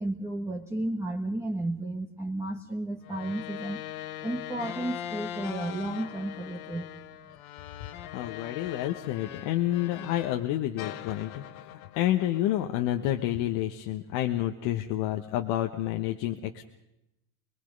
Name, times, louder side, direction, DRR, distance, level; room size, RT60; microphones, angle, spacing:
voice 1, 0.0-3.8 4.2-6.9, right 1 dB, 5° right, 0 dB, 1.5 m, -33 dB
sound 1, 3.0-10.4 10.8-13.2, left 12 dB, 85° left, 1.2 m, -41 dB
voice 2, 7.8-16.7, left 13 dB, 65° left, 4 dB, 1.4 m, -29 dB
24.5 x 20.5 x 5.4 m, 0.88 s
supercardioid pair, 115°, 42 cm